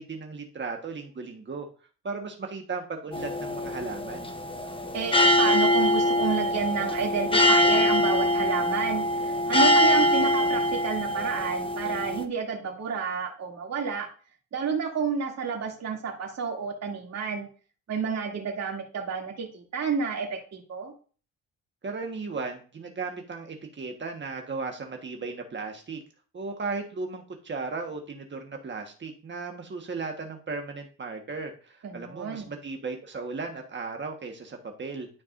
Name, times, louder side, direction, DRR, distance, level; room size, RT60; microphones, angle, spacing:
voice 1, 0.0-1.7 2.0-4.3 21.8-26.0 26.3-35.1, right 4 dB, 40° right, 3 dB, 1.3 m, -36 dB
sound 1, 3.1-12.2, left 1 dB, 15° left, 1.0 m, -23 dB
voice 2, 4.9-14.1 14.5-17.5 17.9-20.9 31.8-32.5, right 6 dB, 60° right, 0 dB, 2.6 m, -30 dB
12.5 x 4.6 x 2.5 m, 0.39 s
cardioid pair, 90°, 30 cm